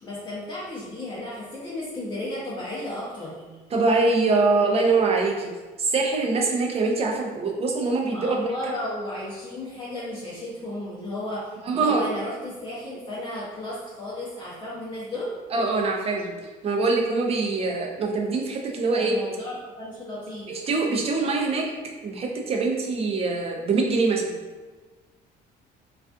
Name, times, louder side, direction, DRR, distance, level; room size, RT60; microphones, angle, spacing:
voice 1, 0.0-3.4 8.1-15.3 18.9-20.6, left 1 dB, 30° left, -8 dB, 0.6 m, -34 dB
voice 2, 3.7-5.5 5.8-8.5 11.7-12.0 15.5-16.3 16.6-19.2 20.5-21.7 22.0-24.4, right 3 dB, 35° right, 0 dB, 0.4 m, -23 dB
2.4 x 2.4 x 2.4 m, 1.3 s
cardioid pair, 110°, 17 cm